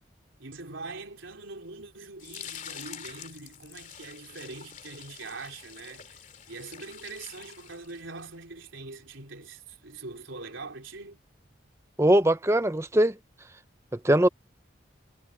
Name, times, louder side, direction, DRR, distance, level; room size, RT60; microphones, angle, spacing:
voice 1, 0.4-11.2, right 3 dB, 90° right, 4.0 m, -43 dB
sound 1, 2.2-8.2, left 8 dB, 40° left, 2.9 m, -46 dB
voice 2, 12.0-13.2 14.0-14.3, right 1 dB, 15° right, 0.7 m, -21 dB
head